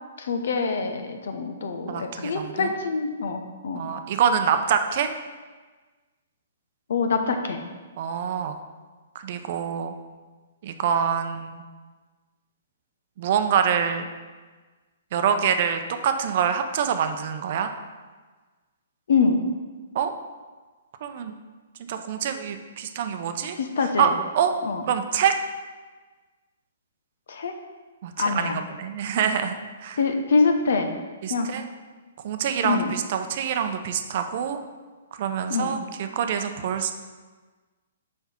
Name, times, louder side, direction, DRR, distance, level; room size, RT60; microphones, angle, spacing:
voice 1, 0.2-3.8 6.9-7.6 19.1-19.4 23.6-24.1 24.6-24.8 27.3-27.5 28.2-28.6 30.0-30.9 31.3-31.5 32.6-32.9 35.5-35.8, left 4 dB, 70° left, 6 dB, 0.9 m, -25 dB
voice 2, 1.9-2.7 3.7-5.1 8.0-8.6 9.2-9.9 10.6-11.6 13.2-14.1 15.1-17.7 19.9-20.1 21.0-21.3 21.9-23.6 24.0-24.1 24.3-24.5 24.9-25.3 28.0-30.0 31.2-31.6 32.2-34.6 35.2-36.9, right 8 dB, 50° right, 7 dB, 0.6 m, -25 dB
5.9 x 5.4 x 4.4 m, 1.4 s
hypercardioid pair, 140°, 0 cm